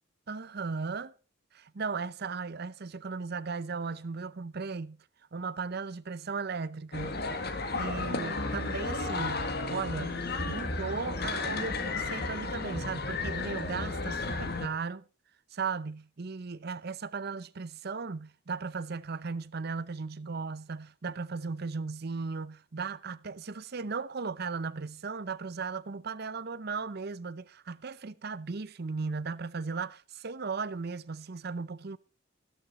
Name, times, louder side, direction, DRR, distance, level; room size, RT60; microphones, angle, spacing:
voice 1, 0.3-1.1 1.5-5.0 5.3-7.2 7.8-15.0 15.5-32.0, right 4 dB, 55° right, 0.7 m, -36 dB
sound 1, 6.9-14.7, left 3 dB, 55° left, 1.8 m, -33 dB
13.5 x 13.0 x 4.1 m
head